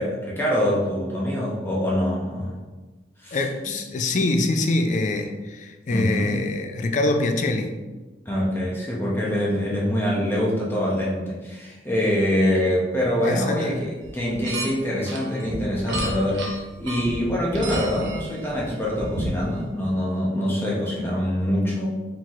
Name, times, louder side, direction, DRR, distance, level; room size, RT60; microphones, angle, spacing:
voice 1, 0.0-2.6 3.2-3.4 5.9-6.3 8.3-21.9, equal, 10° left, -5 dB, 0.7 m, -24 dB
voice 2, 3.3-7.7 13.2-13.9, left 2 dB, 45° left, 5 dB, 0.4 m, -24 dB
sound 1, 14.0-14.7 15.1-19.5, right 1 dB, 85° right, 0.8 m, -31 dB
4.4 x 4.0 x 2.4 m, 1.2 s
head